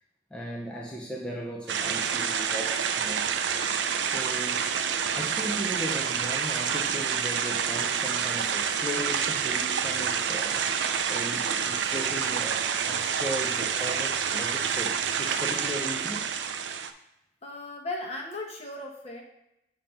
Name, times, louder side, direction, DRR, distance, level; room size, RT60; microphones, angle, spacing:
voice 1, 0.3-3.3 4.0-4.7 5.1-16.3, equal, 5° left, -3 dB, 0.6 m, -37 dB
sound 1, 1.7-16.9, right 7 dB, 85° right, 0.5 m, -28 dB
voice 2, 17.4-19.2, left 2 dB, 35° left, 0 dB, 1.2 m, -36 dB
7.3 x 2.8 x 5.2 m, 0.85 s
head